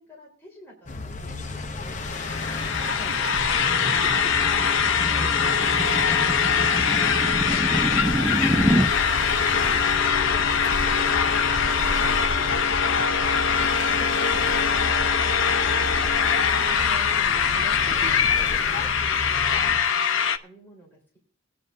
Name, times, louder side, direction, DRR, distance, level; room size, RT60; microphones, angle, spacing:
voice 1, 0.0-3.1 12.9-13.7 19.6-21.2, right 1 dB, 10° left, -4 dB, 3.9 m, -50 dB
sound 1, 0.9-19.8, left 2 dB, 35° left, 0.8 m, -33 dB
sound 2, 1.9-20.4, left 6 dB, 70° left, 0.7 m, -23 dB
sound 3, 2.7-8.9, equal, 10° right, 0.5 m, -28 dB
voice 2, 3.8-4.6 14.3-14.7 16.6-19.0, right 2 dB, 75° right, 2 dB, 1.7 m, -43 dB
21.0 x 9.7 x 2.6 m, 0.43 s
head